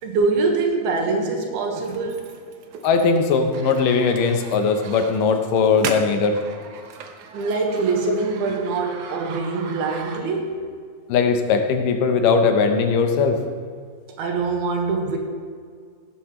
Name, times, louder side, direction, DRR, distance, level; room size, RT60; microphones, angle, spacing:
voice 1, 0.0-2.3 7.3-10.7 14.2-15.2, right 4 dB, 90° right, 2 dB, 3.4 m, -24 dB
sound 1, 1.7-10.6, right 5 dB, 70° right, 2.1 m, -38 dB
voice 2, 2.8-6.4 8.1-8.2 11.1-13.4, left 5 dB, 70° left, 5 dB, 2.4 m, -19 dB
17.0 x 12.0 x 3.2 m, 2.1 s
omnidirectional pair, 4.3 m